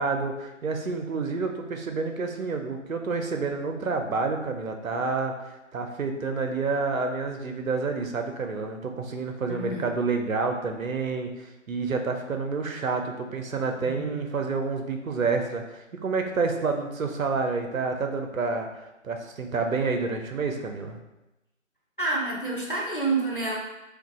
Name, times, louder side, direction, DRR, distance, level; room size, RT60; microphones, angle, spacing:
voice 1, 0.0-18.7 19.0-21.0, right 4 dB, 85° right, 4 dB, 0.6 m, -29 dB
voice 2, 9.5-9.9 13.9-14.2 22.0-23.6, right 3 dB, 40° left, -4 dB, 0.5 m, -28 dB
3.9 x 2.4 x 2.2 m, 0.96 s
figure-of-eight pair, 175°, 40 cm